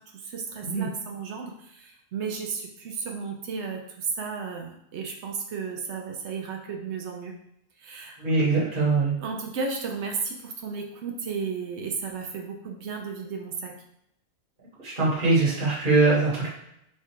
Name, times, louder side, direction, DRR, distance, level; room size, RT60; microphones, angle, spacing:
voice 1, 0.0-7.4 7.8-8.2 9.2-13.7, right 5 dB, 65° right, 2 dB, 0.8 m, -34 dB
voice 2, 8.2-9.1 14.8-16.5, right 3 dB, 40° right, -8 dB, 1.4 m, -22 dB
3.3 x 2.4 x 4.3 m, 0.77 s
omnidirectional pair, 1.4 m